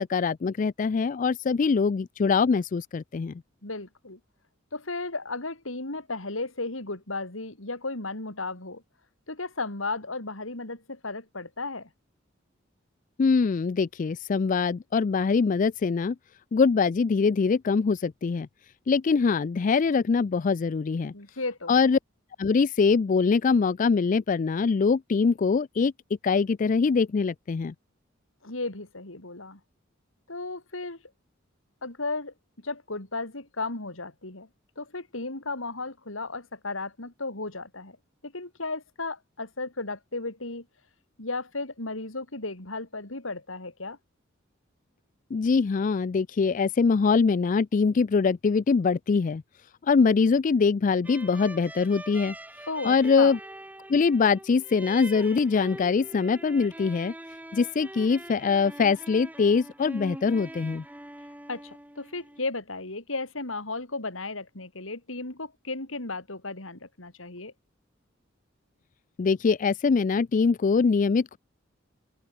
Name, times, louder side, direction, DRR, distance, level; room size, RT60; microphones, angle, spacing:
voice 1, 0.0-3.4 13.2-16.2 16.5-18.5 18.9-21.1 21.7-22.0 22.4-25.9 26.2-27.7 45.3-49.4 49.8-52.3 52.8-53.4 53.9-57.1 57.5-60.8 69.2-71.4, left 5 dB, 40° left, 0.4 m, -23 dB
voice 2, 3.6-4.2 4.7-8.8 9.3-11.9 21.1-21.8 28.4-29.6 30.3-31.0 31.8-34.5 34.8-38.0 38.2-40.7 41.2-44.0 52.7-53.4 61.5-67.5, left 3 dB, 85° left, 4.0 m, -35 dB
sound 1, 51.0-62.5, right 1 dB, 10° right, 2.9 m, -43 dB
open air
head